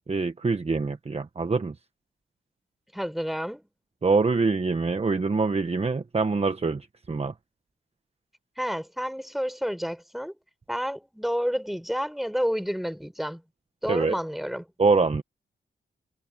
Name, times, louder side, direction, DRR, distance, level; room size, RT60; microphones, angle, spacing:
voice 1, 0.1-1.7 4.0-7.3 13.9-14.1 14.8-15.2, right 4 dB, 30° right, 1.1 m, -24 dB
voice 2, 2.9-3.6 8.6-10.3 10.7-13.4 13.8-14.7, equal, ahead, 4.6 m, -30 dB
wide cardioid pair, 90°, 20 cm